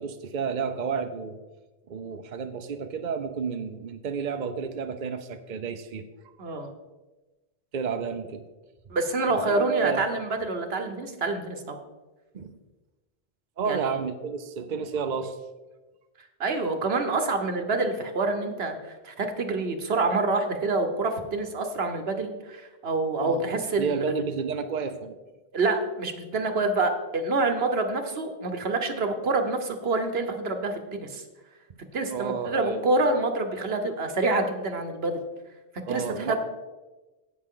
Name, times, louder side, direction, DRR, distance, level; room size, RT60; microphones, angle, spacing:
voice 1, 0.0-1.4 1.9-6.0 7.7-8.5 9.3-10.0 12.3-12.6 13.6-15.4 23.2-25.1 32.1-33.2 35.9-36.4, right 5 dB, 50° right, 7 dB, 0.7 m, -31 dB
voice 2, 6.4-6.7 8.9-11.8 13.7-13.9 16.4-24.2 25.5-31.2 31.9-35.2 35.9-36.4, right 3 dB, 80° right, 6 dB, 1.3 m, -27 dB
16.5 x 6.0 x 3.8 m, 1.2 s
omnidirectional pair, 1.0 m